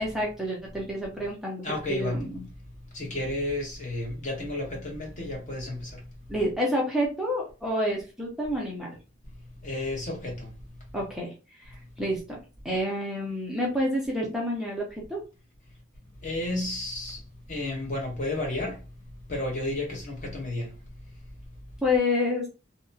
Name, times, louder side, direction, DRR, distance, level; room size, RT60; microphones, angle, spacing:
voice 1, 0.0-2.5 6.3-8.9 10.9-11.3 11.6-12.4 12.6-15.2 21.8-22.5, left 1 dB, ahead, 0.5 m, -29 dB
voice 2, 1.6-2.2 2.9-6.0 9.6-10.5 16.2-17.2 17.5-18.8 19.3-20.8, left 1 dB, 40° left, 0.9 m, -32 dB
2.8 x 2.1 x 2.6 m
head